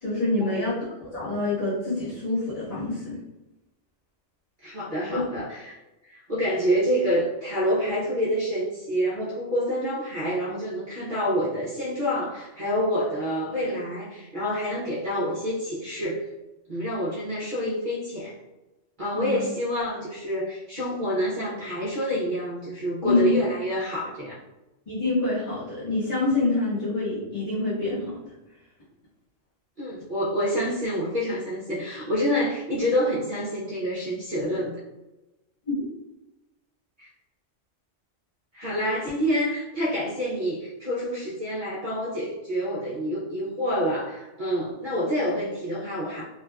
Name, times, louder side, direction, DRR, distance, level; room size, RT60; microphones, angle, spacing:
voice 1, 0.0-3.2 5.1-5.2 19.1-19.4 23.0-23.3 24.9-28.2 35.7-35.8, left 2 dB, 35° left, -15 dB, 1.2 m, -26 dB
voice 2, 4.6-16.3 16.7-18.3 19.0-24.4 29.8-34.8 37.0-37.1 38.5-46.2, equal, 50° right, -7 dB, 0.7 m, -27 dB
3.2 x 2.4 x 2.2 m, 1.0 s
omnidirectional pair, 1.3 m